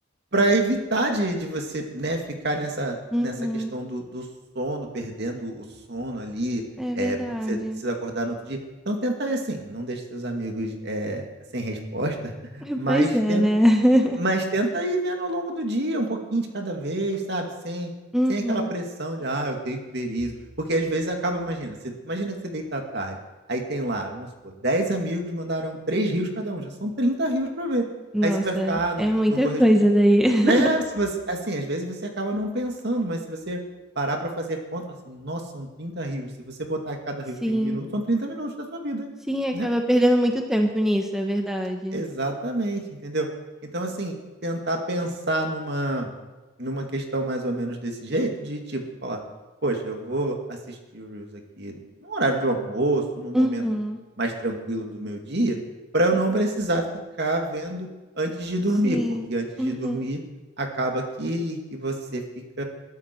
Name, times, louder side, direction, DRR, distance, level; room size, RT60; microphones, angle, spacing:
voice 1, 0.3-4.2 4.6-6.6 6.9-7.2 7.5-8.6 8.9-11.3 11.5-13.5 14.2-17.9 18.3-20.3 20.6-23.1 23.5-27.8 28.2-29.6 30.4-33.6 34.0-39.1 39.5-39.7 41.9-43.3 43.6-44.1 44.4-46.1 46.6-49.2 49.6-53.6 54.2-55.6 55.9-56.8 57.2-57.9 58.2-59.0 59.3-60.2 60.6-62.2 62.6-62.7, right 1 dB, 55° right, 3 dB, 2.3 m, -27 dB
voice 2, 3.1-3.7 6.8-7.8 12.6-14.2 18.1-18.7 28.1-30.7 37.4-37.8 39.3-42.0 53.3-54.0 58.8-59.3 59.6-60.0, equal, ahead, 3 dB, 1.1 m, -22 dB
22.0 x 12.0 x 4.7 m, 1.2 s
head